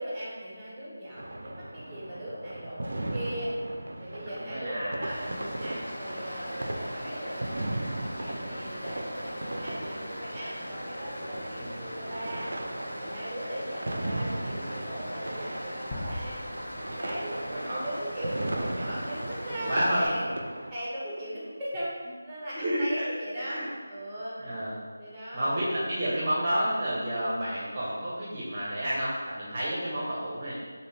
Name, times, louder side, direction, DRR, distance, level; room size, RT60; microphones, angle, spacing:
voice 1, 0.0-3.6 4.0-12.5 13.0-16.5 17.0-20.3 20.7-21.9 22.2-24.4 25.0-25.6, equal, 5° right, -8 dB, 1.0 m, -38 dB
sound 1, 1.2-20.7, right 1 dB, 65° right, 0.4 m, -37 dB
voice 2, 4.3-5.0 5.3-5.4 11.6-11.9 17.3-17.8 19.5-20.2 22.5-23.6 24.4-24.8 25.3-30.5, equal, 30° right, -7 dB, 0.8 m, -30 dB
Stream, 5.1-20.1, equal, 70° left, 1.3 m, -40 dB
sound 2, 15.9-18.8, left 1 dB, 20° left, 0.6 m, -42 dB
4.2 x 2.7 x 3.2 m, 1.5 s
figure-of-eight pair, 165°, 0 cm